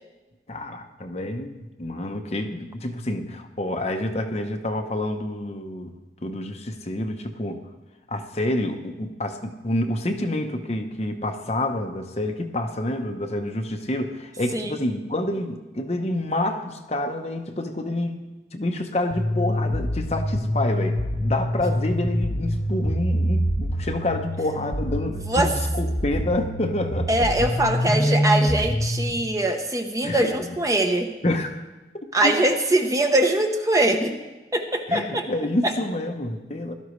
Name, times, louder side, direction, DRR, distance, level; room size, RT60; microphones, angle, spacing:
voice 1, 0.5-5.9 6.2-7.6 8.1-18.2 18.5-27.3 30.0-30.6 31.2-31.5 32.2-32.6 34.9-36.7, left 1 dB, 35° left, 5 dB, 0.8 m, -28 dB
sound 1, 19.1-29.1, equal, 55° left, 1.3 m, -25 dB
voice 2, 27.1-31.1 32.1-34.1 34.5-35.2 35.6-35.7, right 1 dB, 20° right, 4 dB, 0.8 m, -22 dB
16.5 x 12.5 x 3.2 m, 1.2 s
head